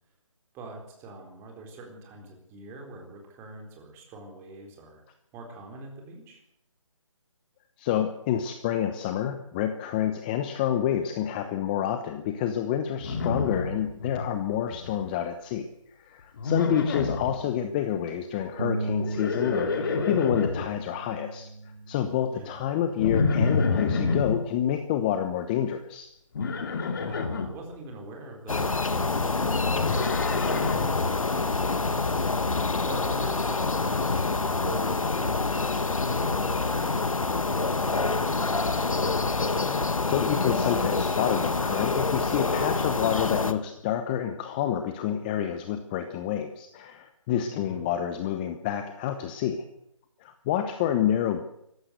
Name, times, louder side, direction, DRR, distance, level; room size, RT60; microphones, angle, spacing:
voice 1, 0.5-5.0 5.3-6.4 17.3-17.5 22.3-22.6 26.9-32.6 32.8-38.7 47.5-47.9, right 2 dB, 15° right, 2 dB, 4.1 m, -43 dB
voice 2, 7.8-15.7 16.0-21.5 21.9-26.1 39.6-49.6 50.2-51.5, left 10 dB, 15° left, 8 dB, 1.0 m, -28 dB
Livestock farm animals working animals, 13.0-14.3 14.5-15.1 16.4-17.4 18.9-20.7 23.0-24.4 26.3-27.5 29.3-31.0, left 4 dB, 40° left, 2.6 m, -28 dB
sound 1, 18.6-24.8, right 3 dB, 90° right, 1.9 m, -38 dB
sound 2, 28.5-43.5, left 3 dB, 85° left, 1.8 m, -26 dB
24.0 x 14.5 x 8.0 m, 0.78 s
figure-of-eight pair, 160°, 17 cm